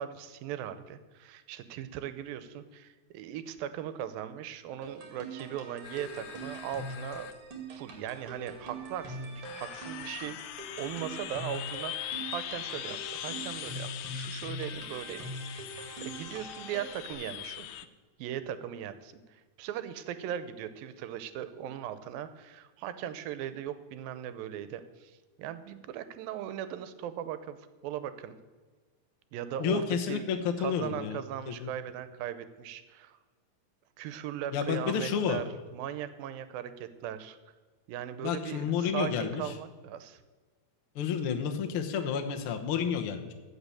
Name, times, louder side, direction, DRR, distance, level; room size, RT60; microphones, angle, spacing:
voice 1, 0.0-7.3 7.7-15.3 15.7-17.8 18.2-27.6 27.8-28.4 29.3-33.2 34.0-35.4 35.7-37.5 37.9-40.2, right 10 dB, 85° right, 12 dB, 2.6 m, -39 dB
sound 1, 4.8-17.1, right 2 dB, 45° right, 2.6 m, -43 dB
sound 2, 5.8-17.9, left 13 dB, 90° left, 2.5 m, -41 dB
voice 2, 29.6-31.2 31.5-31.7 34.5-35.4 38.2-39.5 40.9-43.3, left 7 dB, 70° left, 5 dB, 1.3 m, -30 dB
14.5 x 5.9 x 8.4 m, 1.4 s
omnidirectional pair, 4.1 m